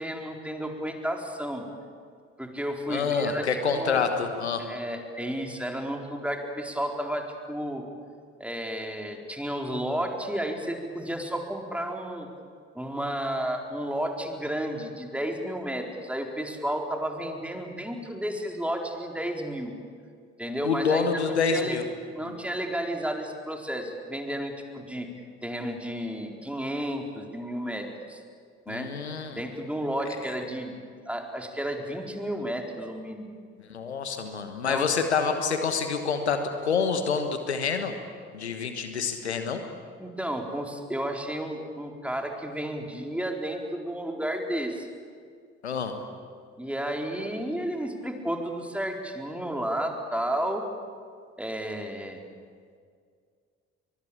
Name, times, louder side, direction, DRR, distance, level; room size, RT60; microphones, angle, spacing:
voice 1, 0.0-1.7 2.4-4.0 4.6-7.9 8.4-12.3 12.7-19.7 20.4-21.1 21.5-21.8 22.1-25.1 25.4-28.2 28.7-28.9 29.4-30.8 31.1-33.3 34.7-34.8 40.0-44.9 46.6-50.6 51.4-52.2, right 1 dB, 5° right, 2 dB, 4.3 m, -32 dB
voice 2, 2.9-4.7 20.6-21.8 28.7-29.4 33.7-38.0 38.3-39.6 45.6-46.0, left 5 dB, 90° left, 7 dB, 1.4 m, -27 dB
23.0 x 22.5 x 8.8 m, 2.1 s
figure-of-eight pair, 45°, 32 cm